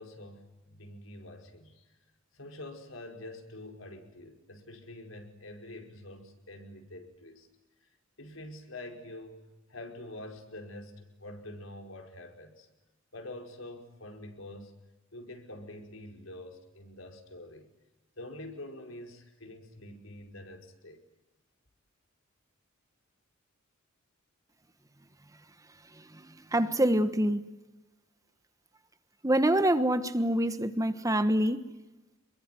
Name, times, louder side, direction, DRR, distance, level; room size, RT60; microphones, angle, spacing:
voice 1, 0.0-2.0 2.3-7.5 7.8-7.9 8.2-12.7 13.1-14.7 15.1-17.7 18.2-21.0, left 1 dB, 85° left, 5.2 m, -46 dB
voice 2, 26.2-27.5 29.2-31.7, right 1 dB, 15° right, 1.3 m, -26 dB
27.5 x 22.5 x 9.4 m
head